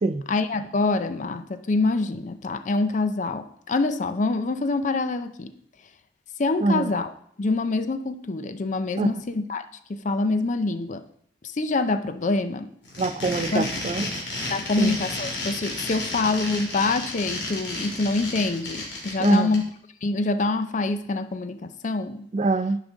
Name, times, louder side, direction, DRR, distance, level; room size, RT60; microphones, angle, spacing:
voice 1, 0.3-5.5 6.4-7.1 7.4-9.6 9.9-11.0 11.4-12.7 13.5-13.7 14.5-19.6 20.0-22.3, left 3 dB, 40° left, 11 dB, 0.4 m, -25 dB
voice 2, 6.6-6.9 9.0-9.2 13.0-14.1 14.8-15.0 19.2-19.6 22.3-22.8, right 3 dB, 35° right, 12 dB, 0.3 m, -24 dB
sound 1, 12.8-19.6, left 2 dB, 75° left, 2.2 m, -32 dB
9.6 x 4.9 x 3.8 m, 0.66 s
head